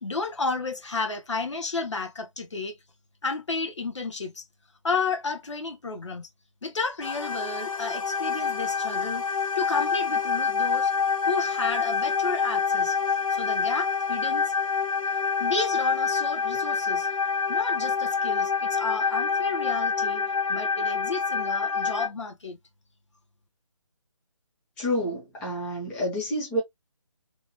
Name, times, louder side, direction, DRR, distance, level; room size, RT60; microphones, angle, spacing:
voice 1, 0.0-2.7 3.2-4.4 4.8-6.3 6.6-9.2 9.6-10.9 11.3-13.0 13.3-14.5 15.4-17.1 17.5-20.2 20.5-22.6, left 4 dB, 60° left, 1.0 m, -32 dB
sound 1, 7.0-22.1, left 5 dB, 80° left, 0.8 m, -26 dB
voice 2, 24.8-26.6, equal, 5° left, 0.6 m, -28 dB
3.0 x 2.3 x 2.8 m
figure-of-eight pair, 150°, 17 cm